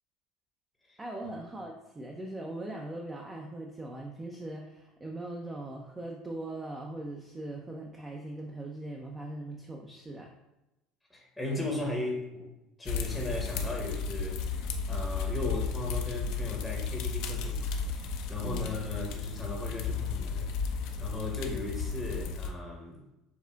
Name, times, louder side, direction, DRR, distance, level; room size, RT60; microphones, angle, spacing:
voice 1, 1.0-10.3 18.4-18.7, right 1 dB, 15° right, 0 dB, 0.5 m, -40 dB
voice 2, 11.1-23.0, left 1 dB, ahead, -1 dB, 0.9 m, -37 dB
sound 1, 12.9-22.5, left 5 dB, 55° left, 0.4 m, -34 dB
7.0 x 2.4 x 2.3 m, 0.94 s
figure-of-eight pair, 65°, 0 cm